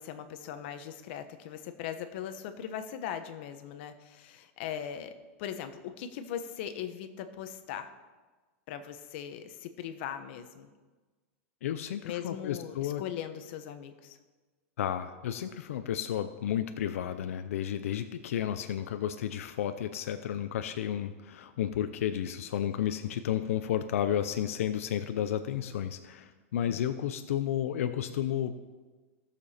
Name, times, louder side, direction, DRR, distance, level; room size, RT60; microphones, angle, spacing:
voice 1, 0.0-7.9 8.7-10.7 12.0-14.2 26.7-26.8, left 9 dB, 55° left, 8 dB, 0.9 m, -40 dB
voice 2, 11.6-13.0 14.8-28.6, left 10 dB, 85° left, 9 dB, 0.6 m, -32 dB
16.5 x 6.9 x 4.3 m, 1.3 s
supercardioid pair, 160°, 7 cm